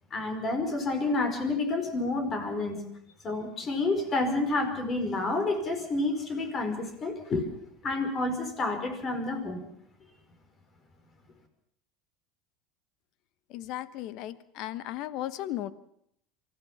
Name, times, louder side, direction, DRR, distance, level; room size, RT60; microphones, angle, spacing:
voice 1, 0.1-2.9 3.2-7.4 7.8-9.6, left 2 dB, 35° left, 7 dB, 4.9 m, -29 dB
voice 2, 13.5-15.7, left 13 dB, 60° left, 15 dB, 1.2 m, -36 dB
24.0 x 15.0 x 7.2 m, 0.71 s
supercardioid pair, 100°, 0 cm